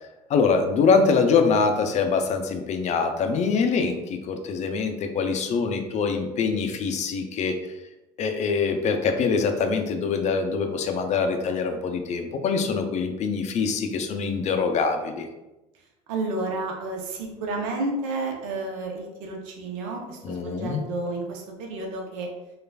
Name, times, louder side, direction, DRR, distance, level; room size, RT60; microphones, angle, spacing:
voice 1, 0.3-7.5 8.2-15.3 20.2-20.8, left 5 dB, 45° left, 6 dB, 0.4 m, -24 dB
voice 2, 3.7-4.1 16.1-22.3, right 2 dB, 80° right, 1 dB, 0.7 m, -31 dB
3.1 x 2.4 x 2.3 m, 0.98 s
hypercardioid pair, 70°, 16 cm